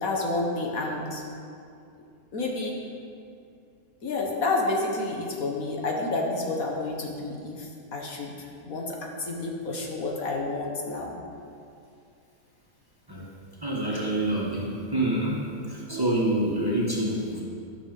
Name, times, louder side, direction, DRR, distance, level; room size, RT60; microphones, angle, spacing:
voice 1, 0.0-1.2 2.3-2.8 4.0-11.2, left 2 dB, 65° left, 0 dB, 1.6 m, -30 dB
voice 2, 13.6-15.4 15.7-17.4, right 1 dB, 15° right, -5 dB, 1.4 m, -27 dB
12.5 x 6.5 x 5.4 m, 2.5 s
omnidirectional pair, 1.6 m